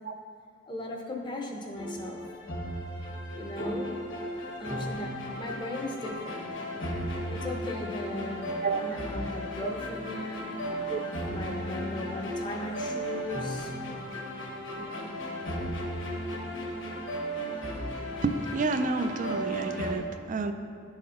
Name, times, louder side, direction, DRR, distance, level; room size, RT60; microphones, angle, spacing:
voice 1, 0.7-2.2 3.4-4.0 4.6-6.5 7.3-8.5 8.8-10.6 11.2-13.7 14.8-15.1, left 2 dB, 25° left, 1 dB, 0.6 m, -37 dB
sound 1, 1.8-20.0, equal, 70° left, 1.2 m, -35 dB
voice 2, 18.2-20.5, right 3 dB, 40° right, 9 dB, 0.4 m, -30 dB
11.0 x 4.2 x 3.7 m, 2.4 s
head